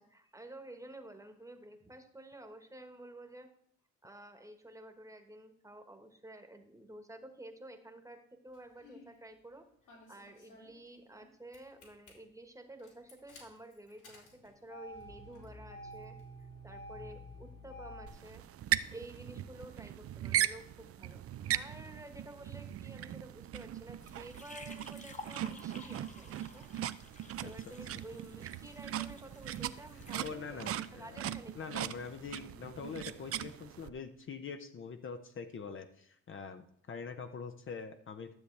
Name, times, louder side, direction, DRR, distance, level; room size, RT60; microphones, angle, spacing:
voice 1, 0.0-3.5 4.0-9.6 10.1-16.1 16.6-18.4 18.9-21.2 21.5-26.6 27.4-31.8, right 1 dB, 10° right, 6 dB, 1.2 m, -51 dB
Engine starting, 8.5-9.1 9.9-11.3 11.5-12.1 12.8-18.1, equal, 75° left, 3.5 m, -50 dB
sound 1, 18.1-33.9, right 11 dB, 50° right, 0.4 m, -39 dB
sound 2, 24.0-30.4, left 2 dB, 25° left, 1.1 m, -53 dB
voice 2, 30.2-31.3 31.5-38.3, left 5 dB, 40° left, 7 dB, 0.7 m, -44 dB
12.5 x 6.9 x 3.3 m, 0.66 s
cardioid pair, 90°, 30 cm